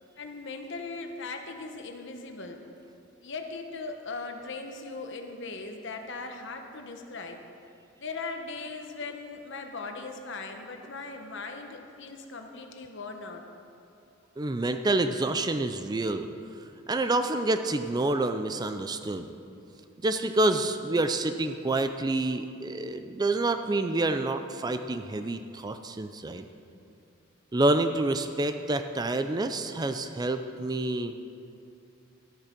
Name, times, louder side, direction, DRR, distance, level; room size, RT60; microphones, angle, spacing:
voice 1, 0.2-2.6 3.2-7.4 8.0-13.4, left 3 dB, 60° left, 4 dB, 1.1 m, -39 dB
voice 2, 14.4-16.3 16.9-19.3 20.0-26.5 27.5-31.1, right 2 dB, 20° right, 8 dB, 0.4 m, -28 dB
12.5 x 8.6 x 6.0 m, 2.6 s
head